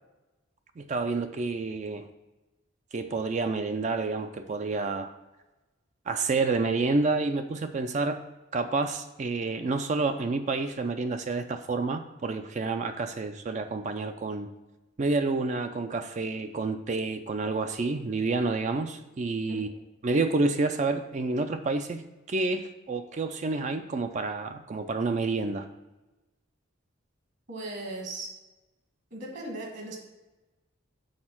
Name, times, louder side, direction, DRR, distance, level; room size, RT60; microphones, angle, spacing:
voice 1, 0.8-2.1 2.9-5.1 6.1-8.2 8.5-14.5 15.0-19.7 20.0-22.0 22.3-25.7, right 3 dB, 35° right, 8 dB, 0.4 m, -29 dB
voice 2, 27.5-28.3 29.1-30.0, right 2 dB, 55° right, 0 dB, 1.5 m, -37 dB
6.5 x 4.3 x 5.7 m, 1.1 s
head